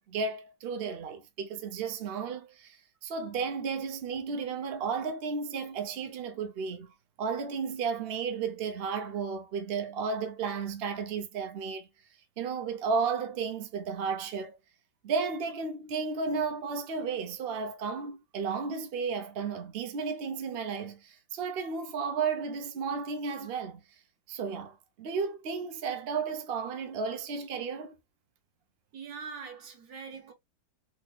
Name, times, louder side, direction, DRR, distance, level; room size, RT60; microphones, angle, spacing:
voice 1, 0.0-6.9 7.2-11.9 12.4-14.6 15.0-23.8 24.3-27.9, right 5 dB, 80° right, 0.5 m, -33 dB
voice 2, 28.9-30.3, right 5 dB, 55° right, 1.5 m, -42 dB
4.2 x 3.1 x 2.2 m
omnidirectional pair, 2.1 m